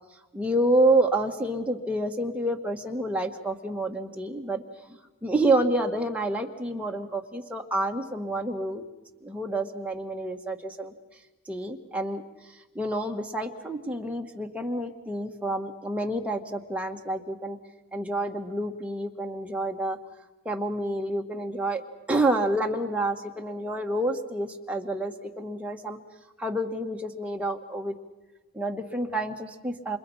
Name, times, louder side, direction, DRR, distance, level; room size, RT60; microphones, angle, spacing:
voice 1, 0.3-4.6 4.9-8.8 9.2-10.9 11.5-12.2 12.7-17.6 17.9-20.0 20.4-21.8 22.1-26.0 26.4-27.9 28.5-30.0, right 1 dB, 5° right, 1 dB, 1.7 m, -28 dB
29.5 x 26.5 x 5.7 m, 1.2 s
head